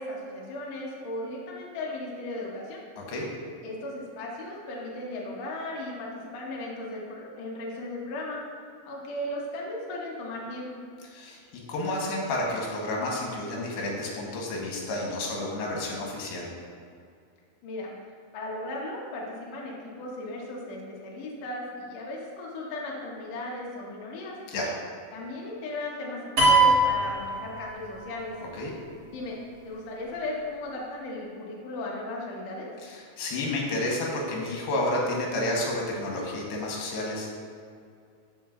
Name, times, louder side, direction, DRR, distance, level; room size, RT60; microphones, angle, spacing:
voice 1, 0.0-2.8 3.6-8.4 8.8-10.8 17.6-17.9 18.3-24.4 25.1-28.3 29.0-29.4 29.6-32.7, left 1 dB, 60° left, -3 dB, 1.8 m, -36 dB
voice 2, 3.0-3.3 11.1-11.4 11.7-16.5 24.5-24.7 28.6-28.7 32.8-37.4, left 1 dB, 80° left, -2 dB, 3.1 m, -30 dB
sound 1, 26.4-28.1, right 2 dB, 45° right, 1.5 m, -21 dB
13.5 x 5.3 x 2.5 m, 2.3 s
omnidirectional pair, 4.6 m